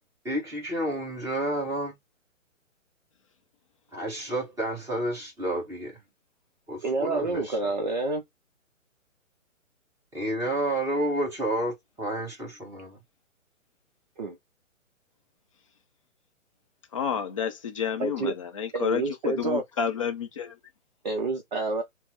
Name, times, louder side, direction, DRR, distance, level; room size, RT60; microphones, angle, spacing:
voice 1, 0.2-1.9 3.9-5.9 6.7-7.5 10.1-13.0, right 1 dB, 5° right, 1.0 m, -30 dB
voice 2, 6.8-8.2 14.2-14.4 18.0-18.3 18.7-19.6 21.0-21.8, right 3 dB, 35° right, 0.5 m, -28 dB
voice 3, 16.9-20.5, left 7 dB, 25° left, 0.5 m, -30 dB
5.7 x 2.0 x 3.9 m
figure-of-eight pair, 130°, 40 cm